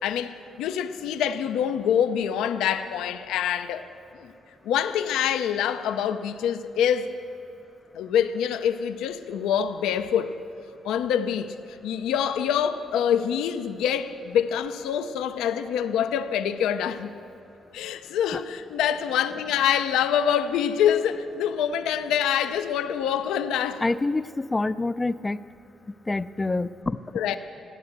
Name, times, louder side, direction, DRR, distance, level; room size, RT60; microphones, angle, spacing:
voice 1, 0.0-3.8 4.1-4.3 4.6-7.1 7.9-10.4 10.8-17.1 17.7-23.8 27.1-27.4, left 9 dB, 90° left, 0.6 m, -25 dB
voice 2, 23.8-25.4 26.1-27.0, left 2 dB, 20° left, 0.4 m, -26 dB
14.5 x 9.6 x 8.0 m
cardioid pair, 90°, 0 cm